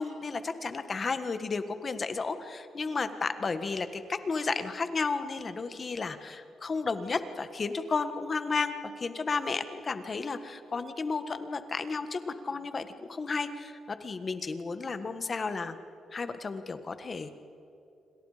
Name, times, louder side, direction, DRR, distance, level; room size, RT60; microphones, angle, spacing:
voice 1, 0.0-15.8 16.1-17.4, left 4 dB, 35° left, 10 dB, 1.5 m, -33 dB
28.0 x 25.5 x 5.1 m, 2.7 s
cardioid pair, 110°, 0 cm